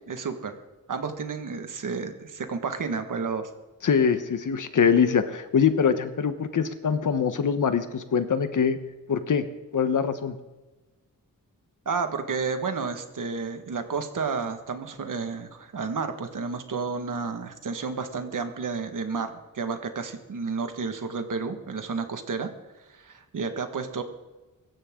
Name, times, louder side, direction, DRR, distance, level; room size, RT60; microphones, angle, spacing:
voice 1, 0.1-0.5 0.9-3.5 11.9-22.5 22.9-24.0, right 5 dB, 65° right, 6 dB, 1.8 m, -31 dB
voice 2, 3.8-8.8 9.1-9.4 9.7-10.4, left 6 dB, 65° left, 10 dB, 1.2 m, -23 dB
24.0 x 13.5 x 3.8 m, 1.2 s
wide cardioid pair, 165°, 34 cm